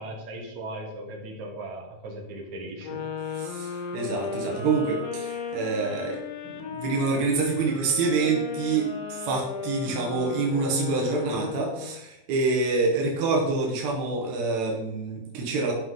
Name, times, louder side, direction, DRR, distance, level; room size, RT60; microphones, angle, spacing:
voice 1, 0.0-3.0, right 1 dB, 65° right, 0 dB, 1.9 m, -38 dB
sound 1, 2.8-12.0, left 6 dB, 80° left, 3.2 m, -35 dB
voice 2, 3.3-15.7, right 3 dB, 85° right, -1 dB, 1.5 m, -27 dB
12.0 x 5.4 x 3.9 m, 0.90 s
omnidirectional pair, 5.5 m